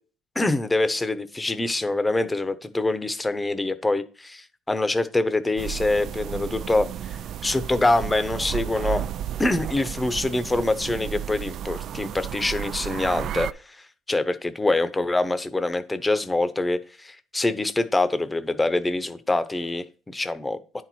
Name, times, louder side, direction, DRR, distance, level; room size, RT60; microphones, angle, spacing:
voice 1, 0.3-9.0 9.4-20.6, left 2 dB, 10° left, 12 dB, 0.9 m, -25 dB
sound 1, 5.6-13.5, right 10 dB, 55° right, 0.4 m, -33 dB
10.0 x 4.5 x 4.3 m, 0.37 s
cardioid pair, 115°, 0 cm